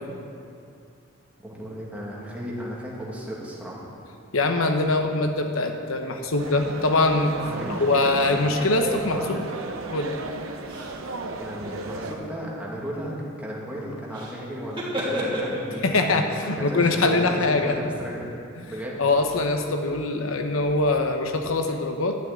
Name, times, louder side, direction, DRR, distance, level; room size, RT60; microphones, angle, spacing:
voice 1, 1.4-3.9 7.4-8.8 9.1-9.4 11.4-16.0 16.4-18.3 18.7-19.0, equal, 5° right, -5 dB, 2.3 m, -35 dB
voice 2, 4.3-7.3 7.8-9.4 9.9-10.2 15.8-17.8 18.6-18.7 19.0-22.2, left 2 dB, 85° left, 5 dB, 1.0 m, -23 dB
sound 1, 6.4-12.1, right 2 dB, 75° right, 1.0 m, -35 dB
sound 2, 9.7-9.9 10.6-11.0 11.5-12.3 14.1-14.4 14.6-16.0, equal, 25° right, 3.2 m, -32 dB
12.5 x 6.3 x 9.4 m, 2.5 s
head